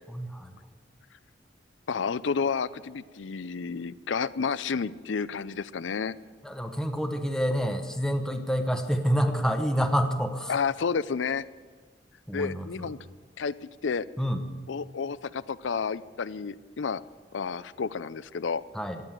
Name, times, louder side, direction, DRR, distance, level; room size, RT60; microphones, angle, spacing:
voice 1, 0.1-0.5 6.4-10.5 12.3-12.9 14.2-14.4 18.7-19.0, equal, 5° left, 5 dB, 1.0 m, -28 dB
voice 2, 1.9-6.2 10.5-11.4 12.3-13.0 13.4-13.5 13.8-14.1 14.7-17.0 17.3-18.6, left 5 dB, 80° left, 17 dB, 0.5 m, -30 dB
17.0 x 11.0 x 7.5 m, 1.5 s
head